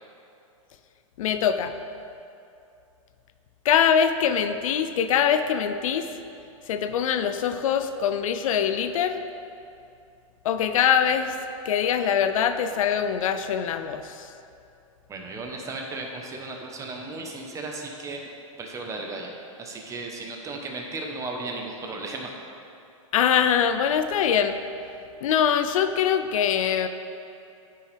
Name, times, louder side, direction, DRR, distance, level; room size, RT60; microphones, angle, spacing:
voice 1, 1.2-1.7 3.6-6.1 6.7-9.2 10.4-11.4 11.6-14.3 23.1-24.6 25.2-26.9, left 8 dB, 70° left, 9 dB, 0.5 m, -23 dB
voice 2, 15.1-18.2 18.6-19.3 19.6-22.4, right 3 dB, 20° right, 1 dB, 0.9 m, -35 dB
9.2 x 6.1 x 3.4 m, 2.6 s
hypercardioid pair, 130°, 18 cm